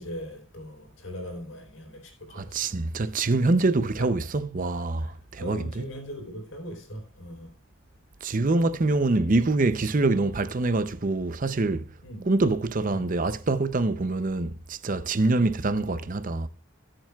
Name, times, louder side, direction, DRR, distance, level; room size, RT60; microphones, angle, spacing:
voice 1, 0.0-2.7 4.0-4.1 5.0-7.5 8.8-9.1 10.0-10.2 12.0-12.3 12.9-13.1 15.3-15.5, equal, 70° left, 3.9 m, -40 dB
voice 2, 2.3-5.9 8.2-11.9 12.3-16.5, right 2 dB, 40° right, 0.6 m, -25 dB
18.0 x 7.5 x 2.4 m
head